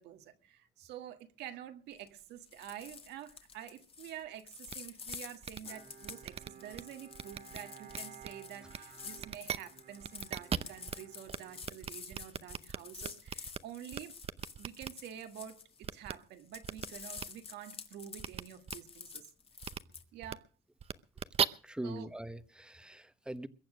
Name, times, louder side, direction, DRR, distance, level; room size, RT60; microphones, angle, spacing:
voice 1, 0.0-14.2 14.6-19.3 20.1-20.5 21.8-22.1, right 10 dB, 85° right, 1.7 m, -48 dB
sound 1, 1.9-2.2 2.5-16.1 16.4-20.0, left 5 dB, 35° left, 1.8 m, -49 dB
sound 2, 4.7-4.8 5.1-5.2 5.4-5.6 6.0-6.8 7.1-7.6 7.9-8.3 8.7-8.8 9.2-9.6 10.0-11.0 11.3-11.4 11.6-13.6 13.9-14.9 15.8-16.1 16.6-16.9 17.2-17.3 18.2-18.4 18.7-18.8 19.6-19.8 20.2-20.3 20.8-21.4, right 7 dB, 35° right, 0.7 m, -37 dB
Bowed string instrument, 5.6-12.3, right 7 dB, 60° right, 2.6 m, -56 dB
voice 2, 21.6-23.5, right 1 dB, 5° right, 1.1 m, -42 dB
22.0 x 8.7 x 6.3 m
cardioid pair, 110°, 17 cm